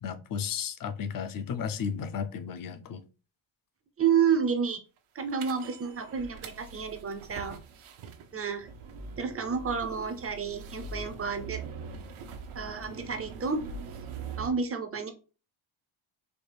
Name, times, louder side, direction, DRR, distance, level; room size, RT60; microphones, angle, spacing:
voice 1, 0.0-3.0, left 7 dB, 45° left, 0.5 m, -34 dB
voice 2, 4.0-4.8 5.1-7.6 8.3-8.7 9.2-11.6 12.5-13.6 14.4-15.1, right 6 dB, 30° right, 0.5 m, -30 dB
sound 1, 5.4-14.5, right 4 dB, 80° right, 0.7 m, -43 dB
4.2 x 2.4 x 3.2 m
wide cardioid pair, 140°, 48 cm